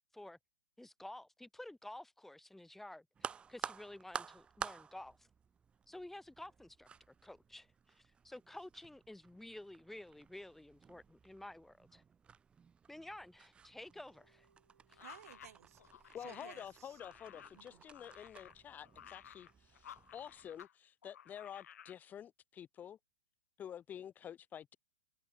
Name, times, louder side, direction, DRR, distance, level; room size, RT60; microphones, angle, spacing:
voice 1, 0.8-5.3 5.9-12.0 12.9-14.5 14.9-15.0, left 1 dB, 5° left, 1.7 m, -52 dB
sound 1, 3.1-20.7, right 6 dB, 10° right, 0.3 m, -52 dB
sound 2, 13.9-20.6, right 5 dB, 85° right, 5.8 m, -76 dB
sound 3, 14.9-20.7 21.0-22.0, left 9 dB, 70° left, 2.1 m, -56 dB
voice 2, 15.0-17.0 17.5-17.8, right 11 dB, 65° right, 2.6 m, -57 dB
voice 3, 16.1-23.0 23.6-24.8, left 9 dB, 20° left, 0.8 m, -49 dB
hypercardioid pair, 120°, 9 cm